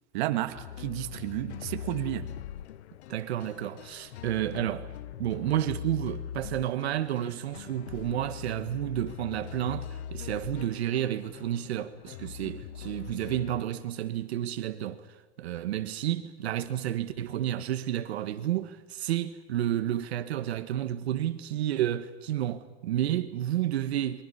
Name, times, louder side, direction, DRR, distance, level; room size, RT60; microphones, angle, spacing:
voice 1, 0.1-2.3, right 14 dB, 45° right, 1.6 m, -32 dB
sound 1, 0.5-13.6, left 9 dB, 85° left, 0.8 m, -42 dB
voice 2, 3.1-4.9 5.2-15.1 15.4-24.2, right 12 dB, 75° right, 1.5 m, -31 dB
29.5 x 23.5 x 5.7 m
supercardioid pair, 165°, 32 cm